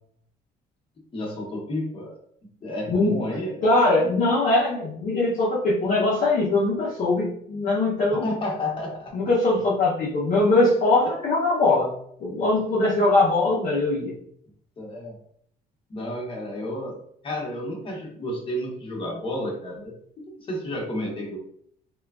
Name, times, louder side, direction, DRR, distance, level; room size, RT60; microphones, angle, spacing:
voice 1, 1.1-2.2 2.6-3.7 8.2-9.1 14.8-15.2 15.9-16.9 17.2-21.4, left 1 dB, 30° left, -1 dB, 1.0 m, -31 dB
voice 2, 3.6-8.2 9.1-11.9 12.2-14.1, left 2 dB, 50° left, -6 dB, 0.8 m, -21 dB
3.0 x 2.2 x 2.4 m, 0.65 s
cardioid pair, 110°, 17 cm